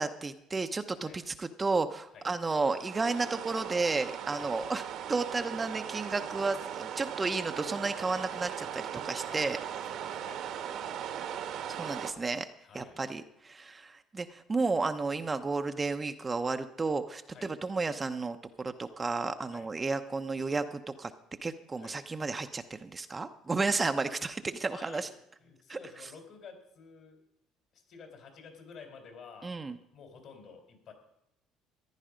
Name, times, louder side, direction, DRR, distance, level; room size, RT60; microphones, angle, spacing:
voice 1, 0.0-4.8 5.1-9.6 11.7-12.5 12.7-21.1 21.4-25.1 25.7-25.8 29.4-29.8, right 3 dB, 20° right, 8 dB, 0.7 m, -32 dB
sound 1, 2.6-12.1, right 9 dB, 65° right, 1.2 m, -39 dB
voice 2, 9.8-10.4 12.6-13.0 17.3-17.5 19.5-19.7 21.8-21.9 24.7-25.1 25.4-27.2 27.7-29.5 29.9-30.9, left 5 dB, 55° left, 4 dB, 3.8 m, -51 dB
14.5 x 10.5 x 5.1 m, 0.82 s
cardioid pair, 105°, 0 cm